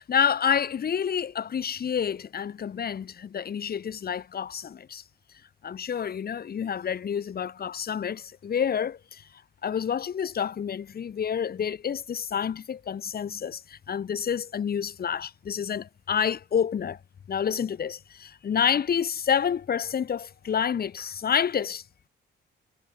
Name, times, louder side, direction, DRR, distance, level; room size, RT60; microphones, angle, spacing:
voice 1, 0.0-5.0 5.6-9.3 9.6-17.0 17.3-21.8, left 8 dB, 50° left, 2.6 m, -28 dB
cardioid pair, 90°, 20 cm